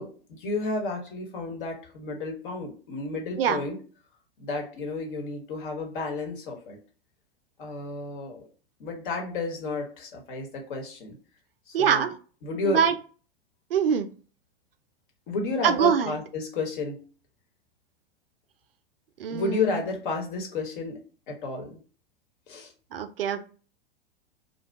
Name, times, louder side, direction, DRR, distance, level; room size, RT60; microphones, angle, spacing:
voice 1, 0.0-3.8 4.4-6.8 7.6-8.4 8.8-11.2 11.7-12.1 12.4-12.8 15.3-17.0 19.3-21.0 21.3-21.8 22.5-22.7, left 3 dB, 60° left, 1 dB, 1.2 m, -32 dB
voice 2, 11.7-12.1 12.7-12.9 13.7-14.1 15.6-16.2 19.2-19.8 22.9-23.4, right 7 dB, 70° right, 10 dB, 0.5 m, -24 dB
2.7 x 2.3 x 3.4 m, 0.39 s
figure-of-eight pair, 95°, 30 cm